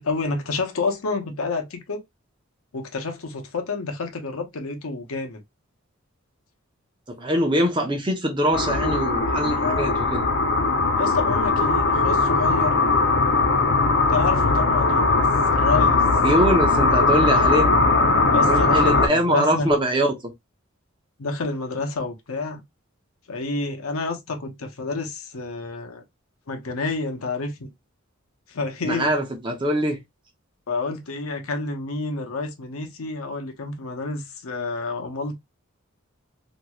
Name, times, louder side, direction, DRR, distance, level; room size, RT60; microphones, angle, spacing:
voice 1, 0.0-2.0 2.7-5.4 9.5-9.9 11.0-12.8 13.9-16.0 18.3-19.7 21.2-22.6 23.3-26.0 26.5-27.7 28.5-29.1 30.7-35.3, left 3 dB, 90° left, 0.7 m, -29 dB
voice 2, 7.2-10.3 16.2-17.7 18.4-20.1 28.9-30.0, equal, 25° right, 0.7 m, -23 dB
sound 1, 8.5-19.1, left 3 dB, 55° left, 0.5 m, -19 dB
3.0 x 2.6 x 2.3 m
head